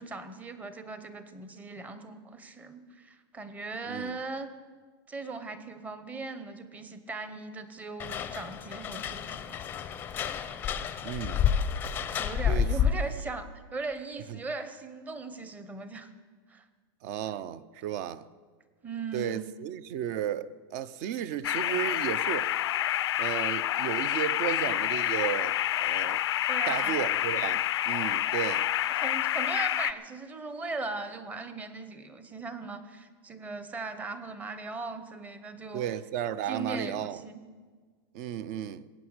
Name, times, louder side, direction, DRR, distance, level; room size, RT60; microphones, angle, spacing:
voice 1, 0.0-4.5 5.1-9.6 12.2-16.1 16.5-16.6 18.8-19.5 26.5-27.1 28.9-35.9 36.4-37.4, right 3 dB, 10° right, 0.9 m, -39 dB
sound 1, 8.0-13.2, left 7 dB, 15° left, 0.6 m, -30 dB
voice 2, 11.0-11.5 12.5-12.7 14.3-14.4 17.0-18.3 19.1-22.5 23.2-26.2 26.7-28.7 35.7-37.2 38.1-38.8, right 10 dB, 40° right, 0.6 m, -34 dB
sound 2, 21.4-29.9, left 12 dB, 90° left, 0.5 m, -28 dB
20.0 x 8.6 x 8.0 m
supercardioid pair, 160°, 13 cm